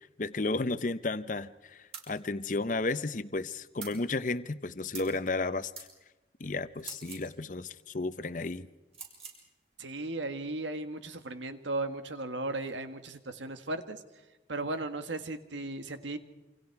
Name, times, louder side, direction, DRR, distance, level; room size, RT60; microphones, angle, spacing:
voice 1, 0.2-5.7 6.4-8.7, left 3 dB, 45° left, 13 dB, 0.7 m, -33 dB
sound 1, 1.9-2.1 3.8-4.0 4.9-5.2 5.7-5.9 6.8-7.3 8.9-9.4, right 5 dB, 35° right, 5.5 m, -44 dB
voice 2, 9.8-14.0 14.5-16.2, right 2 dB, 85° right, 8 dB, 1.7 m, -36 dB
28.5 x 26.0 x 4.7 m, 1.1 s
head